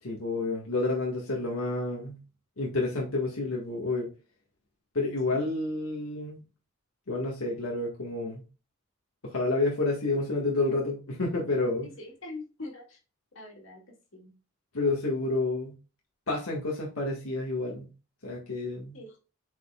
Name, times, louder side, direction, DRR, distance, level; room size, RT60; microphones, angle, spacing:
voice 1, 0.0-2.2 2.6-4.1 4.9-6.4 7.1-8.4 9.2-11.9 14.7-15.8 16.3-17.9 18.2-19.0, left 2 dB, 90° left, -2 dB, 1.7 m, -29 dB
voice 2, 11.8-13.0 13.3-13.8 14.1-14.3 18.9-19.2, left 2 dB, 65° left, 0 dB, 2.5 m, -43 dB
7.9 x 5.1 x 2.4 m, 0.32 s
head